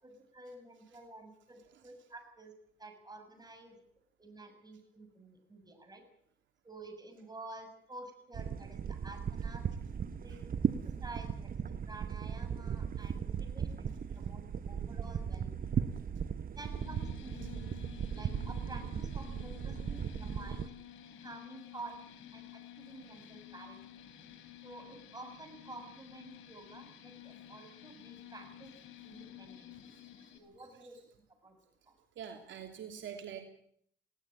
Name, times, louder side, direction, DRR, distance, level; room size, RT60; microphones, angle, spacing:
voice 1, 0.0-2.5 2.8-3.8 4.2-6.0 6.6-9.6 10.2-10.6 10.8-15.7 16.6-20.7 21.2-21.9 22.3-23.8 24.6-28.7 29.0-29.7 30.3-31.0 31.4-31.6 31.9-32.0, right 2 dB, 20° right, 5 dB, 7.3 m, -50 dB
sound 1, 8.3-20.7, right 7 dB, 45° right, 1.0 m, -37 dB
sound 2, 16.7-30.4, left 11 dB, 85° left, 4.3 m, -52 dB
voice 2, 32.2-33.4, right 8 dB, 70° right, 4 dB, 3.0 m, -44 dB
20.5 x 17.5 x 8.9 m, 0.67 s
cardioid pair, 90°, 20 cm